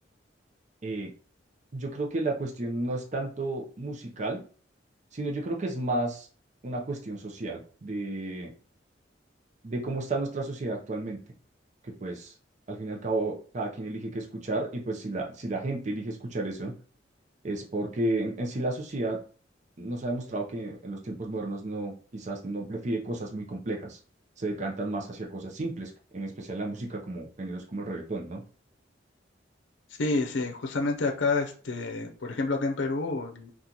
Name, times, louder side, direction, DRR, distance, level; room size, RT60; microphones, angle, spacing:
voice 1, 1.7-4.4 5.1-6.3 6.6-8.5 9.6-11.2 11.8-12.3 12.7-16.7 17.4-19.2 19.8-24.0 24.4-28.4, right 2 dB, 40° right, 0 dB, 0.6 m, -32 dB
voice 2, 30.0-33.5, left 3 dB, 90° left, 3 dB, 0.5 m, -29 dB
2.8 x 2.4 x 3.8 m, 0.40 s
head